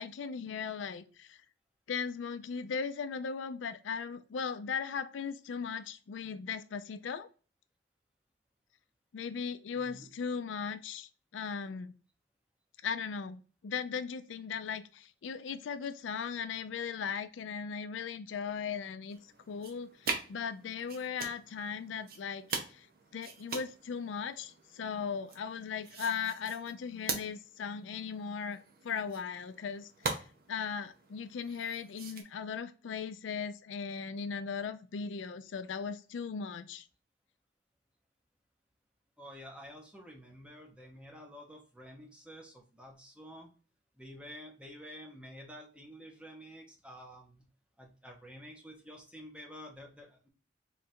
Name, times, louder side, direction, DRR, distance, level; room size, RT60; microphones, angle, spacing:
voice 1, 0.0-1.4 1.9-7.3 9.1-12.0 12.8-19.2 19.5-22.4 22.7-22.9 23.1-28.6 28.8-30.2 30.5-36.9, left 6 dB, 90° left, 10 dB, 0.4 m, -38 dB
voice 2, 9.7-10.1 39.2-43.5 44.0-47.4 47.8-50.3, equal, 5° right, 0 dB, 0.9 m, -50 dB
sound 1, 19.1-32.2, right 4 dB, 55° right, 0.7 m, -43 dB
3.8 x 2.5 x 4.2 m, 0.37 s
head